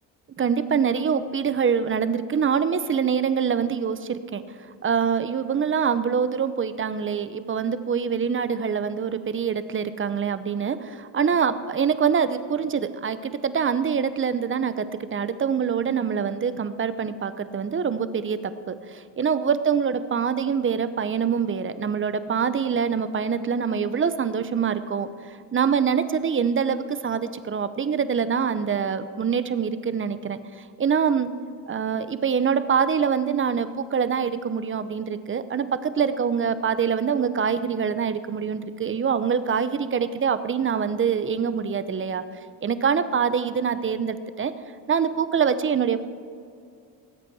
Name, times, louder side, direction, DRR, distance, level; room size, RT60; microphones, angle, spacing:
voice 1, 0.3-4.4 4.8-31.3 31.7-42.2 42.6-44.5 44.9-46.0, right 7 dB, 25° right, 13 dB, 0.7 m, -25 dB
19.0 x 8.2 x 4.8 m, 2.3 s
cardioid pair, 95°, 45 cm